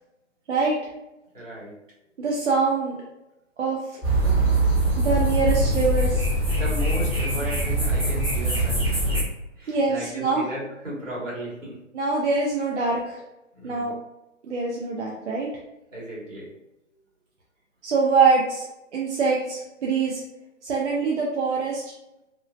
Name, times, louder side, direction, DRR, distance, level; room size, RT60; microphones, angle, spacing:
voice 1, 1.3-1.7 6.5-9.2 9.6-11.8 13.5-13.9 15.9-16.6, right 1 dB, 85° right, -6 dB, 1.5 m, -35 dB
voice 2, 2.2-2.9 3.6-3.8 5.0-6.3 9.7-10.4 11.9-13.2 13.6-13.9 14.4-15.5 17.8-18.6 18.9-20.2 20.6-21.8, right 4 dB, 65° right, -3 dB, 0.6 m, -24 dB
sound 1, 4.0-9.2, right 1 dB, 5° right, 0.6 m, -22 dB
3.0 x 2.3 x 2.2 m, 0.92 s
figure-of-eight pair, 135°, 38 cm